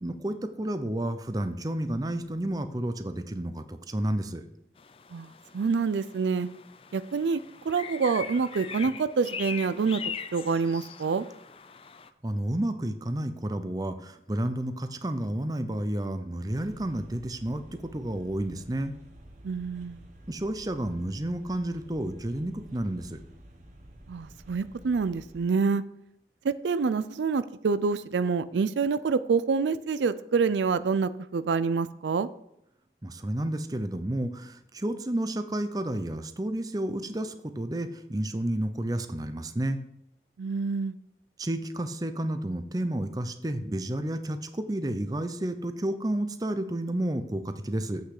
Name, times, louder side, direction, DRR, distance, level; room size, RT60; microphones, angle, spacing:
voice 1, 0.0-4.4 12.2-18.9 20.3-23.2 33.0-39.8 41.4-48.0, right 1 dB, 20° right, 9 dB, 0.6 m, -31 dB
sound 1, 4.8-12.1, left 7 dB, 30° left, 0.4 m, -41 dB
voice 2, 5.5-6.5 6.9-7.4 7.7-10.0 10.3-11.2 19.4-20.0 24.1-25.8 26.4-32.3 40.4-40.9, right 5 dB, 90° right, 15 dB, 0.4 m, -27 dB
sound 2, 16.5-25.4, right 1 dB, 45° right, 1.2 m, -51 dB
8.0 x 6.6 x 4.8 m, 0.80 s
head